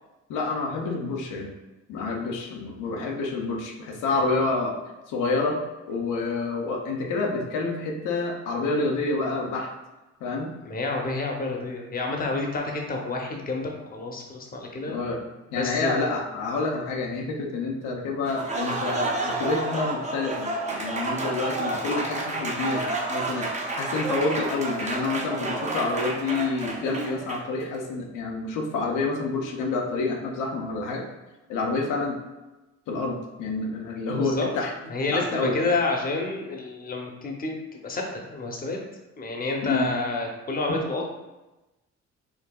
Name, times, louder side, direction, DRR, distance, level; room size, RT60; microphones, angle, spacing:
voice 1, 0.3-1.5 1.9-4.7 5.1-5.6 5.9-9.7 10.2-10.5 14.9-15.2 15.5-31.0 31.5-32.2 32.9-34.7 35.1-35.6 39.6-39.9, left 3 dB, 90° left, 0 dB, 0.7 m, -28 dB
voice 2, 10.6-15.0 15.6-15.9 34.1-34.5 34.8-38.8 39.2-41.0, left 3 dB, 30° left, 1 dB, 0.7 m, -29 dB
Applause, 18.2-27.6, right 2 dB, 25° right, 0.6 m, -30 dB
4.7 x 2.6 x 2.3 m, 1.1 s
cardioid pair, 90°, 30 cm